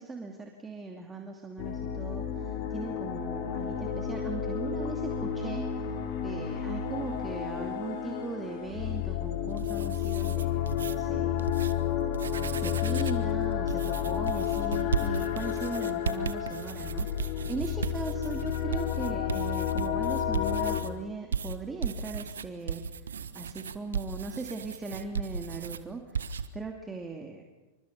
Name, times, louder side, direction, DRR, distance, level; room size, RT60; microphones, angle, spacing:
voice 1, 0.0-5.9 6.2-11.5 12.5-17.1 17.5-22.8 23.3-26.2 26.5-27.4, right 3 dB, 15° right, 2 dB, 2.6 m, -39 dB
sound 1, 1.6-20.8, left 9 dB, 55° left, 3.6 m, -31 dB
sound 2, 9.4-10.9 11.4-11.7 12.1-13.2 13.7-20.9 21.3-25.8 26.1-26.5, right 6 dB, 80° right, 1.3 m, -36 dB
27.5 x 25.0 x 5.5 m, 1.1 s
hypercardioid pair, 95°, 0 cm